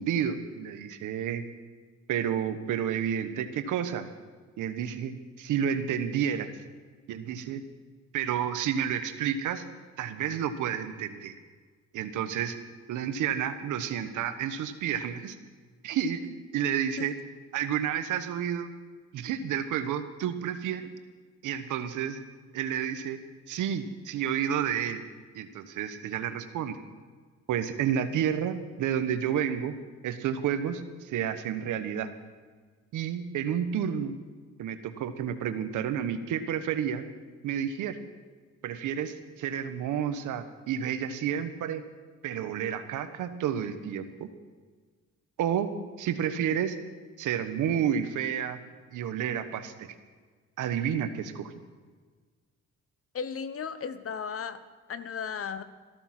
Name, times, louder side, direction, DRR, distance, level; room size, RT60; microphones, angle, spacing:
voice 1, 0.0-1.4 2.1-4.1 4.6-6.5 7.1-7.6 8.1-9.6 10.0-11.3 11.9-12.5 12.9-15.4 15.8-17.1 17.5-18.7 19.1-20.9 21.4-22.2 22.5-23.2 23.5-25.0 25.3-26.8 27.5-29.7 30.0-32.1 32.9-34.2 34.6-37.1 37.4-38.0 38.6-41.8 42.2-44.3 45.4-45.7 46.0-46.8 47.2-48.6 48.9-49.9 50.6-51.5, right 9 dB, 85° right, 10 dB, 1.2 m, -30 dB
voice 2, 53.1-54.6 54.9-55.6, left 6 dB, 50° left, 12 dB, 1.0 m, -35 dB
14.5 x 13.0 x 6.0 m, 1.5 s
cardioid pair, 90°, 30 cm